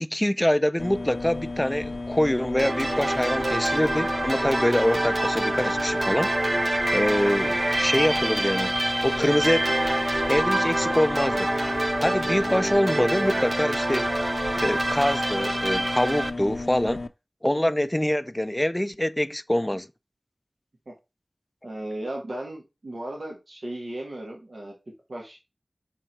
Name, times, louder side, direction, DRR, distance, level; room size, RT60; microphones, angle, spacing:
voice 1, 0.0-6.3 6.9-8.8 9.0-9.7 10.3-11.5 12.0-14.1 14.6-17.0 17.4-19.9, left 1 dB, 15° left, 0.4 m, -25 dB
sound 1, 0.8-17.1, left 3 dB, 75° left, 0.5 m, -34 dB
sound 2, 2.6-16.3, right 1 dB, 45° right, 0.6 m, -26 dB
voice 2, 21.6-24.7 25.1-25.4, right 1 dB, 75° right, 1.6 m, -36 dB
5.7 x 3.7 x 4.5 m
wide cardioid pair, 50°, 0 cm